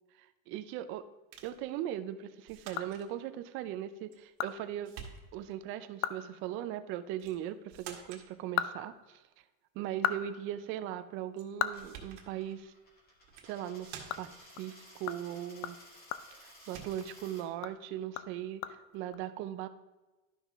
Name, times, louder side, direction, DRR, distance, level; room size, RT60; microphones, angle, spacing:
voice 1, 0.2-1.0 1.4-4.9 5.3-9.4 9.7-12.7 13.4-15.8 16.3-19.7, right 11 dB, 35° right, 11 dB, 0.4 m, -39 dB
sound 1, 1.3-1.6 2.5-3.1 4.1-4.6 4.8-5.5 7.2-7.4 7.7-8.3 11.4-11.5 11.8-12.3 13.2-13.5 13.8-14.4 16.1-16.3 16.6-17.1, right 7 dB, 65° right, 1.6 m, -49 dB
sound 2, 2.3-3.5 3.9-4.0 4.4-4.5 4.9-5.0 5.4-5.5 5.9-6.3 6.5-6.7 8.2-9.4 9.8-12.7 13.1-13.2 13.6-17.1 17.5-19.1, left 11 dB, 45° left, 0.4 m, -38 dB
Coin (dropping), 11.6-17.4, left 1 dB, 25° left, 1.8 m, -56 dB
12.0 x 5.6 x 3.5 m, 1.1 s
supercardioid pair, 155°, 40 cm